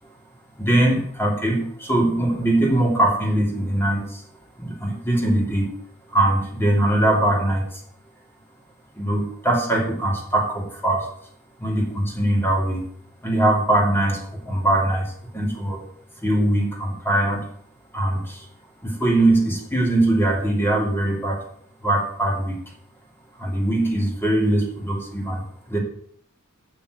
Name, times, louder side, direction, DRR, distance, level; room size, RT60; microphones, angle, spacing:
voice 1, 0.6-4.2 4.6-5.7 6.1-7.6 9.0-11.1 11.6-12.8 13.2-15.8 16.2-17.5 17.9-18.4 18.8-21.4 21.8-22.6 23.4-25.4 25.7-25.8, right 1 dB, 10° left, -1 dB, 2.7 m, -21 dB
8.2 x 6.7 x 7.8 m, 0.64 s
head